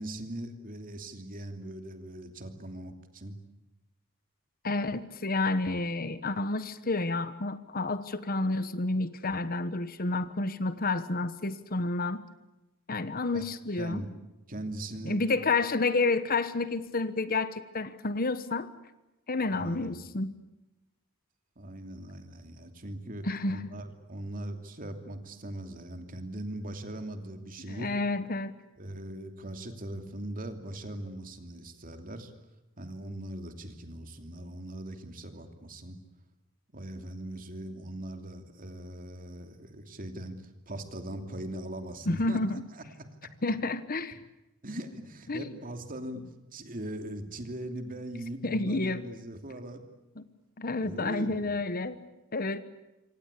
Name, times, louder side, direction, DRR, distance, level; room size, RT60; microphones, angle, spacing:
voice 1, 0.0-3.3 13.3-13.5 13.8-14.1 14.5-15.2 19.5-20.0 21.6-27.9 28.8-32.3 32.8-36.0 36.7-42.6 44.6-46.2 46.5-49.8 50.8-51.5, right 1 dB, 40° right, 6 dB, 2.9 m, -40 dB
voice 2, 4.6-12.2 12.9-14.0 15.0-18.7 19.3-20.4 23.2-23.7 27.6-28.5 42.1-42.6 43.4-44.2 45.3-45.6 48.4-49.0 50.2-50.3 50.6-52.1 52.3-52.6, left 3 dB, 45° left, 13 dB, 1.2 m, -30 dB
27.0 x 25.5 x 8.4 m, 0.97 s
head